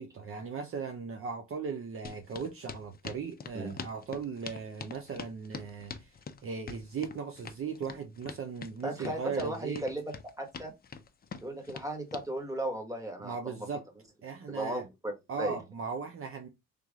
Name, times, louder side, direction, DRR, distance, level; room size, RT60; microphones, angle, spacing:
voice 1, 0.0-6.2 6.4-9.8 13.2-13.9 14.2-14.9 15.3-16.5, right 5 dB, 45° right, 0.7 m, -38 dB
sound 1, 2.0-12.3, left 5 dB, 30° left, 0.6 m, -44 dB
voice 2, 8.8-10.7 11.4-13.6 14.5-15.6, right 1 dB, 10° right, 1.6 m, -36 dB
3.5 x 3.1 x 3.6 m
cardioid pair, 90°, 30 cm